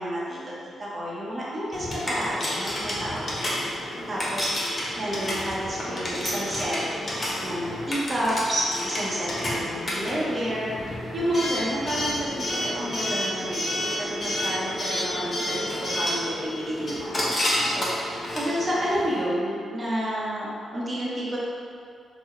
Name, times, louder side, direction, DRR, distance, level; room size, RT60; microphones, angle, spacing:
voice 1, 0.0-3.2 4.1-6.8 7.2-21.4, equal, 35° right, -6 dB, 0.7 m, -30 dB
Coin (dropping) / Alarm, 1.7-19.2, left 1 dB, 35° left, 0.8 m, -30 dB
2.8 x 2.0 x 3.6 m, 2.3 s
supercardioid pair, 50°, 0 cm